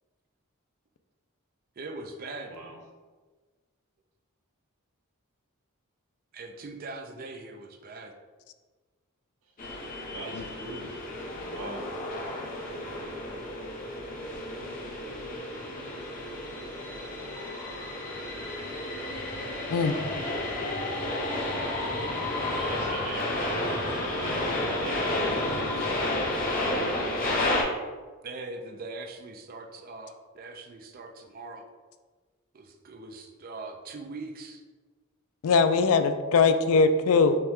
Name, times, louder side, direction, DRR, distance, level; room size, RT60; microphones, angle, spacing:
voice 1, 1.8-2.5 6.3-8.1 28.2-31.6 32.5-34.6, right 3 dB, 40° right, 4 dB, 0.4 m, -41 dB
sound 1, 9.6-27.6, left 1 dB, 40° left, 0.8 m, -31 dB
voice 2, 10.1-11.9 22.5-26.3 26.6-26.9, right 2 dB, 80° right, 0 dB, 0.9 m, -41 dB
voice 3, 35.4-37.4, left 4 dB, 70° left, 9 dB, 0.3 m, -21 dB
5.5 x 2.2 x 3.6 m, 1.4 s
head